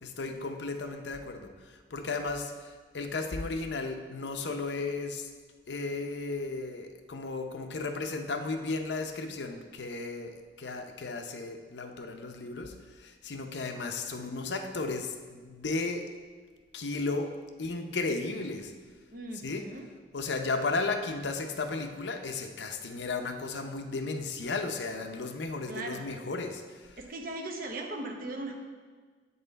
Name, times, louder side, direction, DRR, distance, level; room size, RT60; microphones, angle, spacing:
voice 1, 0.0-1.5 1.9-2.5 2.9-5.2 5.7-12.7 13.0-16.0 16.7-17.3 17.6-18.7 19.4-19.7 20.1-26.6, left 3 dB, 75° left, 5 dB, 0.7 m, -34 dB
voice 2, 19.1-19.9 25.7-26.1 27.0-28.6, right 2 dB, 50° right, 2 dB, 0.9 m, -38 dB
8.0 x 5.5 x 4.0 m, 1.5 s
head